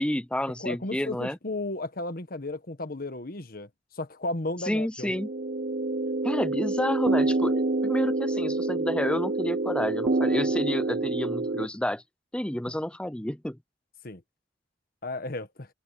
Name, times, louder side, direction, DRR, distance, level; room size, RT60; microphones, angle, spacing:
voice 1, 0.0-1.4 4.7-5.3 6.2-12.0 12.3-13.6, left 1 dB, 5° left, 0.6 m, -30 dB
voice 2, 0.6-3.7 3.9-5.1 14.0-14.2 15.0-15.7, left 2 dB, 55° left, 1.5 m, -34 dB
sound 1, 5.1-11.7, right 2 dB, 55° right, 0.6 m, -27 dB
head